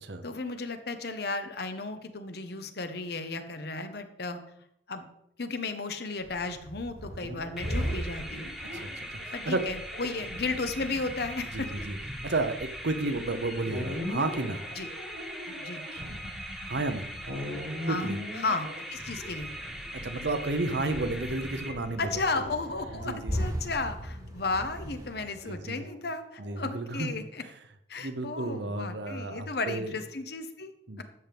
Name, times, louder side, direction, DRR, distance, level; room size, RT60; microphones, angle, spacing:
voice 1, 0.2-4.4 4.9-5.1 5.4-8.5 9.3-11.9 14.8-14.9 15.5-15.8 17.8-18.1 18.4-19.5 22.0-27.4 27.9-30.7, left 3 dB, 60° left, 8 dB, 0.9 m, -34 dB
sound 1, 6.2-15.3 15.6-15.7 15.9-18.3 18.6-25.6, equal, 20° right, 1.4 m, -40 dB
sound 2, 7.2-19.8 20.7-21.3 22.1-23.6 25.2-26.5, left 1 dB, 90° right, 2.2 m, -41 dB
sound 3, 7.6-22.2, equal, ahead, 1.3 m, -41 dB
voice 2, 8.7-9.6 11.5-12.0 12.2-14.6 16.6-17.1 17.9-18.2 19.9-22.1 22.9-23.7 25.4-25.8 26.4-27.1 28.0-30.0 30.9-31.0, right 2 dB, 65° right, 8 dB, 0.9 m, -32 dB
12.5 x 7.5 x 3.5 m, 0.78 s
head